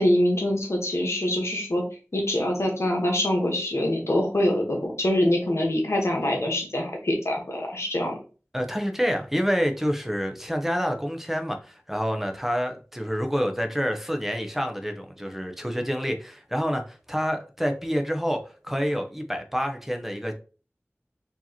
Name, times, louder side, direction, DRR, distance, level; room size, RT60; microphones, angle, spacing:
voice 1, 0.0-1.8 2.1-8.2, left 1 dB, 75° left, 1.1 m, -24 dB
voice 2, 8.5-20.3, equal, 5° right, 0.6 m, -28 dB
4.6 x 2.9 x 2.8 m
wide cardioid pair, 50°, 5 cm